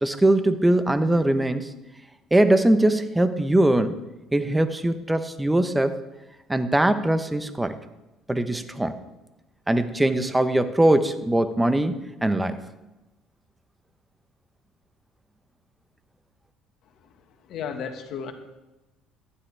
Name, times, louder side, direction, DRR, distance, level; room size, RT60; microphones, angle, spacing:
voice 1, 0.0-1.7 2.3-4.0 4.3-6.0 6.5-7.8 8.3-9.0 9.7-12.6, right 1 dB, 10° right, 10 dB, 0.9 m, -21 dB
voice 2, 17.5-18.3, left 6 dB, 65° left, 5 dB, 1.6 m, -33 dB
15.0 x 11.5 x 3.4 m, 1.0 s
supercardioid pair, 95°, 0 cm